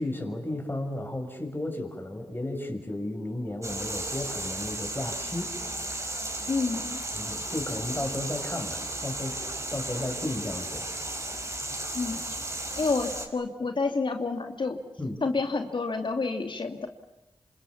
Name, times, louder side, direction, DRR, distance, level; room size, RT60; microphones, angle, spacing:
voice 1, 0.0-5.5 7.1-9.4 9.7-10.9 15.0-15.2, left 1 dB, 20° left, 4 dB, 6.8 m, -33 dB
sound 1, 3.6-13.3, right 1 dB, 30° right, 5.5 m, -34 dB
voice 2, 6.5-7.0 11.9-12.2 12.8-14.8 15.2-16.9, left 3 dB, 55° left, 5 dB, 2.6 m, -29 dB
27.5 x 27.0 x 7.2 m, 0.93 s
cardioid pair, 55°, 10 cm